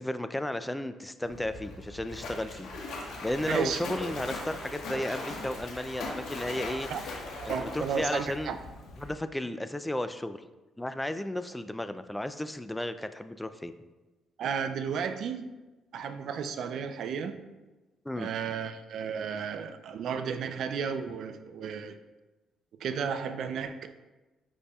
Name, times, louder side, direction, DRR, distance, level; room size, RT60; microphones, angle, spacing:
voice 1, 0.0-2.7 3.2-6.9 7.5-8.6 9.0-10.4 10.8-13.7 15.0-15.2 18.1-18.3, left 1 dB, 5° left, 11 dB, 0.3 m, -34 dB
Splash splatter, 1.2-9.1, left 2 dB, 80° left, 1.3 m, -39 dB
voice 2, 3.5-3.8 6.9-7.0 7.3-8.6 14.4-15.5 15.9-17.4 18.2-22.0 22.8-23.9, right 7 dB, 65° right, 9 dB, 0.4 m, -33 dB
10.0 x 4.2 x 2.3 m, 1.1 s
cardioid pair, 125°, 0 cm